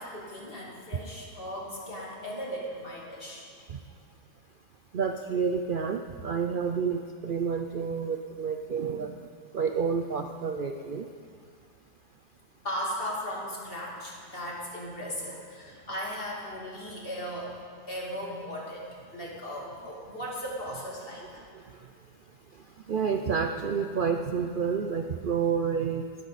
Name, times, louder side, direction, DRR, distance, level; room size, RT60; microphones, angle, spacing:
voice 1, 0.0-3.4 12.6-17.5 17.9-18.8 19.1-21.4, equal, 35° left, -4 dB, 3.0 m, -37 dB
voice 2, 4.9-9.1 9.5-11.0 22.9-26.3, right 6 dB, 85° right, 6 dB, 0.4 m, -29 dB
19.0 x 13.0 x 4.2 m, 2.2 s
omnidirectional pair, 1.7 m